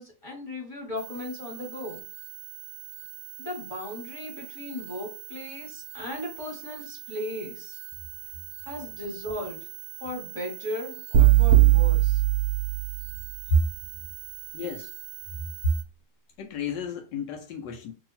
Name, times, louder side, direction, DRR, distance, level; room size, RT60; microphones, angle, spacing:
voice 1, 0.0-2.0 3.4-7.8 8.6-9.7 10.0-12.2, left 1 dB, 20° left, 1.4 m, -37 dB
sound 1, 1.0-15.8, right 13 dB, 65° right, 0.9 m, -42 dB
sound 2, 11.1-13.3, right 15 dB, 90° right, 0.6 m, -19 dB
voice 2, 14.5-14.9 16.4-17.9, right 1 dB, 85° left, 1.3 m, -29 dB
2.8 x 2.8 x 4.1 m
omnidirectional pair, 1.9 m